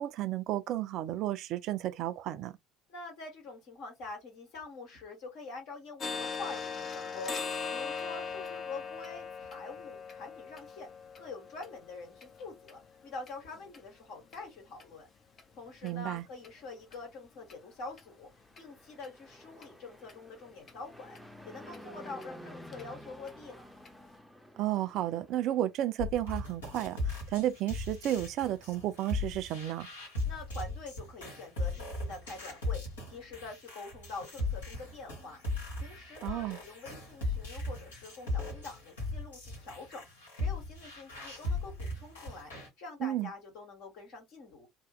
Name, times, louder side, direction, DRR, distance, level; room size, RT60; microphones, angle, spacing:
voice 1, 0.0-2.5 15.8-16.2 24.6-29.9 36.2-36.6 43.0-43.3, right 13 dB, 55° right, 0.4 m, -32 dB
voice 2, 2.9-7.3 7.7-10.9 11.2-15.1 15.6-18.3 18.6-21.2 21.4-23.6 30.3-32.8 33.1-35.4 35.8-40.1 40.3-42.5 42.8-44.7, left 3 dB, 60° left, 1.6 m, -45 dB
sound 1, 6.0-13.8 14.3-14.4 14.8-14.9 15.4-15.5 15.9-16.0 16.4-16.5 16.9-17.0 17.5-17.6 18.0-18.1 18.6-18.7 19.0-19.1 19.6-19.7 20.1-20.2 20.7-20.8 21.2-21.3 21.7-21.8 22.2-22.3 22.7-22.8 23.3-23.4 23.9-24.0, left 5 dB, 40° left, 0.7 m, -40 dB
Fixed-wing aircraft airplane, 18.3-25.7, equal, ahead, 0.6 m, -51 dB
sound 2, 26.0-42.7, left 2 dB, 75° left, 1.4 m, -38 dB
2.9 x 2.1 x 3.0 m
figure-of-eight pair, 60°, 0 cm